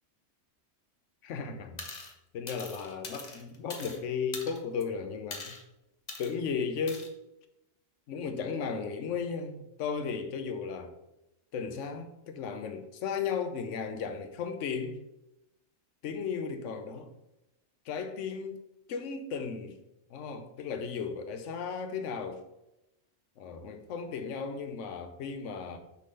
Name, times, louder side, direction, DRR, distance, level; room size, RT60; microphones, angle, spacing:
voice 1, 1.2-2.1 2.3-5.5 6.2-7.1 8.1-10.9 11.5-15.0 16.0-17.1 17.9-18.6 18.9-19.8 20.1-22.4 23.4-25.8, left 6 dB, 85° left, 1.0 m, -35 dB
sound 1, 1.8-2.1 2.5-4.0 4.3-4.8 5.3-5.6 6.1-6.3 6.9-7.1, left 3 dB, 40° left, 0.9 m, -42 dB
6.6 x 3.8 x 5.2 m
omnidirectional pair, 1.2 m